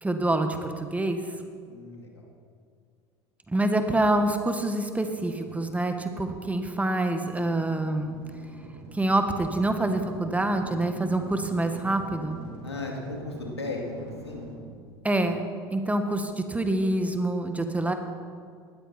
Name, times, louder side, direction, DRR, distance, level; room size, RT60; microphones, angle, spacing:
voice 1, 0.0-1.2 3.5-8.2 8.9-12.4 15.0-15.4 15.7-17.9, right 1 dB, 10° right, 6 dB, 1.7 m, -26 dB
voice 2, 1.6-2.2 12.6-14.0 14.2-14.4, left 2 dB, 90° left, 0 dB, 2.5 m, -36 dB
sound 1, 5.0-16.0, right 2 dB, 65° right, 4.9 m, -45 dB
19.0 x 14.0 x 4.4 m, 2.2 s
figure-of-eight pair, 70°, 13 cm